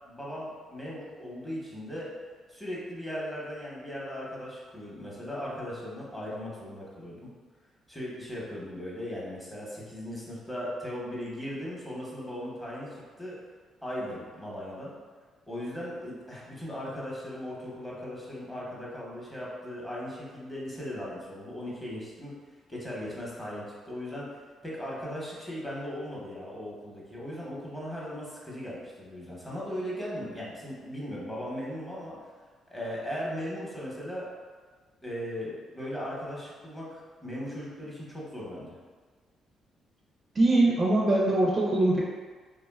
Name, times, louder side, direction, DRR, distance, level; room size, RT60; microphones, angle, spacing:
voice 1, 0.1-2.1 2.5-7.3 7.9-13.4 13.8-14.9 15.5-22.3 22.7-24.3 24.6-32.2 32.7-34.3 35.0-38.8, equal, 10° left, -6 dB, 0.8 m, -38 dB
voice 2, 40.3-42.0, right 2 dB, 35° right, -3 dB, 0.4 m, -22 dB
3.3 x 2.1 x 2.2 m, 1.5 s
cardioid pair, 90°, 0 cm